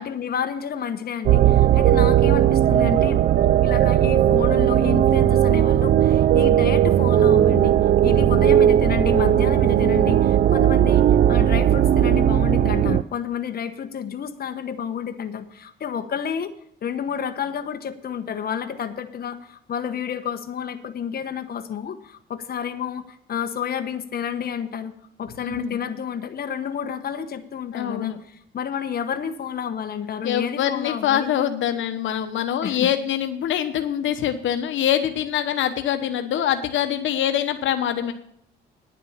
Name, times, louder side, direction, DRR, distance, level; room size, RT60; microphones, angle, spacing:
voice 1, 0.0-3.2 3.6-7.8 8.0-16.5 16.8-24.9 25.2-31.3 32.6-32.9, left 8 dB, 50° left, 7 dB, 1.1 m, -30 dB
sound 1, 1.3-13.0, right 11 dB, 50° right, 0.4 m, -17 dB
voice 2, 25.4-25.8 27.7-28.2 30.2-38.1, left 10 dB, 75° left, 8 dB, 1.1 m, -24 dB
10.5 x 7.4 x 7.2 m, 0.71 s
cardioid pair, 90°, 20 cm